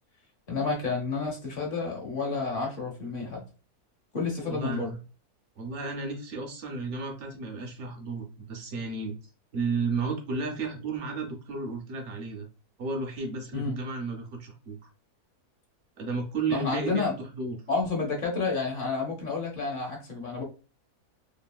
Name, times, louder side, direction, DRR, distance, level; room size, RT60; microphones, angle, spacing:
voice 1, 0.5-3.4 4.1-4.9 13.5-13.8 16.5-17.1 17.7-20.4, left 4 dB, 40° left, 0 dB, 0.9 m, -30 dB
voice 2, 4.5-5.0 5.6-9.1 9.5-12.5 12.8-14.9 16.0-17.1 17.4-17.6, right 4 dB, 65° right, 2 dB, 0.7 m, -33 dB
2.9 x 2.6 x 2.2 m, 0.34 s
omnidirectional pair, 1.7 m